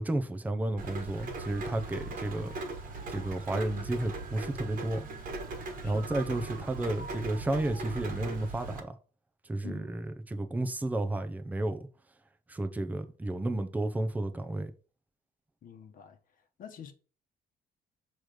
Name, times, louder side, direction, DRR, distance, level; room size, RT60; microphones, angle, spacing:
voice 1, 0.0-2.6 3.1-5.1 5.8-9.0 9.4-11.9 12.5-14.7, right 1 dB, 10° right, 0.7 m, -32 dB
Rain, 0.8-8.8, right 3 dB, 55° right, 1.5 m, -39 dB
voice 2, 9.6-10.1 15.6-16.2 16.6-16.9, left 8 dB, 55° left, 1.1 m, -46 dB
6.1 x 3.2 x 5.0 m
cardioid pair, 110°, 17 cm